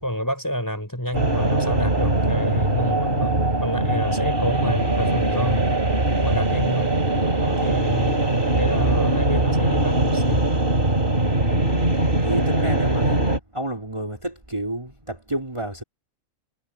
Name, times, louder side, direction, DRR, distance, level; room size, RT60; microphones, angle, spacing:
voice 1, 0.0-5.6 6.2-6.9 7.4-8.2 8.6-10.5, equal, 15° left, 5.5 m, -29 dB
sound 1, 1.1-13.4, right 2 dB, 40° right, 4.0 m, -21 dB
voice 2, 12.2-13.2 13.5-15.8, right 1 dB, 20° right, 3.5 m, -30 dB
omnidirectional pair, 1.5 m